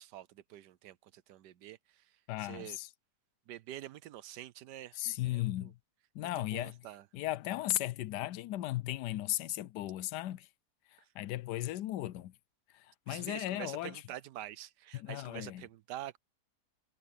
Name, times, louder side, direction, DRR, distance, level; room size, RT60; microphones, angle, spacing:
voice 1, 0.0-2.1 2.4-2.8 3.5-5.0 5.3-5.7 6.2-7.1 13.1-16.2, right 13 dB, 85° right, 1.3 m, -47 dB
voice 2, 2.3-2.9 5.0-5.7 6.1-6.8 7.1-10.5 11.2-12.3 13.1-13.9 14.9-15.6, left 15 dB, 80° left, 1.2 m, -36 dB
omnidirectional pair, 1.8 m